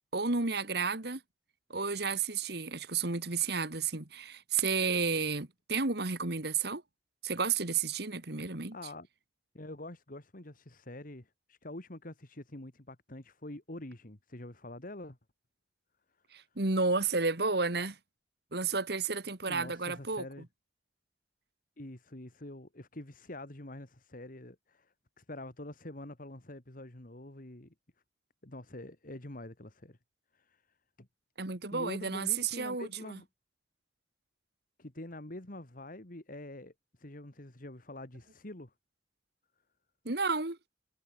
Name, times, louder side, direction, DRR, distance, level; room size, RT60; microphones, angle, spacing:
voice 1, 0.1-1.2 1.7-6.8 7.2-8.8 16.3-18.0 18.5-20.2 31.4-33.2 40.0-40.6, right 4 dB, 65° right, 2.2 m, -32 dB
voice 2, 8.7-9.1 9.5-15.2 19.5-20.5 21.8-27.7 28.4-30.0 30.3-30.6 31.0-31.1 31.7-33.3 34.8-36.7 37.0-38.7, left 1 dB, 50° left, 2.3 m, -46 dB
head